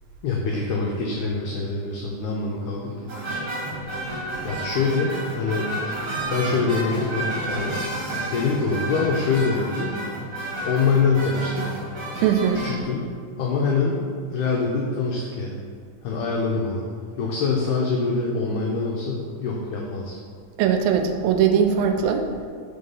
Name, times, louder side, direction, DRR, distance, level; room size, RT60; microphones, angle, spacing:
voice 1, 0.2-3.4 4.4-5.7 6.3-7.8 8.3-9.9 10.6-11.8 12.6-13.0 13.4-14.0 14.3-15.6 16.0-16.8 17.2-20.2, left 4 dB, 90° left, -2 dB, 1.7 m, -24 dB
sound 1, 3.1-12.8, right 1 dB, 50° right, 1.8 m, -31 dB
voice 2, 12.2-12.6 20.6-22.3, right 7 dB, 85° right, 5 dB, 2.3 m, -20 dB
5.1 x 3.8 x 5.4 m, 2.2 s
omnidirectional pair, 4.1 m